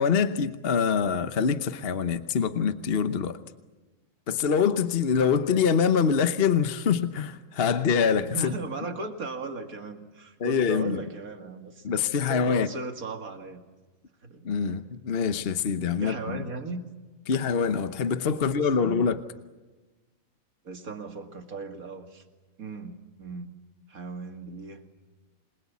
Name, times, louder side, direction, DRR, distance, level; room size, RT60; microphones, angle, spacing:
voice 1, 0.0-3.4 4.3-8.5 10.4-11.0 11.8-12.7 14.4-16.4 17.3-19.2, left 6 dB, 45° left, 1.1 m, -25 dB
voice 2, 8.3-11.9 12.3-13.6 14.2-14.5 16.0-16.8 18.4-19.0 20.6-22.2 22.6-23.5 23.9-24.8, right 3 dB, 80° right, 2.6 m, -37 dB
27.5 x 22.0 x 8.4 m
omnidirectional pair, 1.5 m